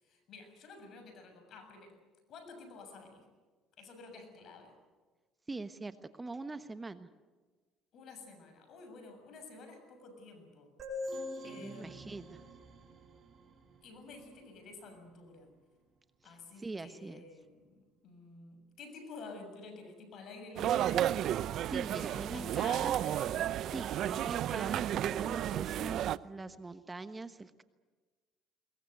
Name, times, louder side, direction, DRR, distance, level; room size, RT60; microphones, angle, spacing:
voice 1, 0.0-2.0 2.3-3.2 3.8-4.7 7.9-10.7 11.4-12.3 13.8-15.5 16.2-21.1 21.9-23.4 23.7-24.2, left 3 dB, 60° left, 7 dB, 7.1 m, -50 dB
voice 2, 5.5-7.1 11.4-12.4 16.2-17.2 21.6-23.0 23.7-27.6, right 3 dB, 20° right, 11 dB, 1.2 m, -43 dB
sound 1, 10.8-14.3, left 2 dB, 45° right, 4.6 m, -44 dB
sound 2, 20.6-26.2, right 11 dB, 65° right, 0.7 m, -32 dB
22.0 x 21.0 x 9.4 m, 1.3 s
supercardioid pair, 90°, 0 cm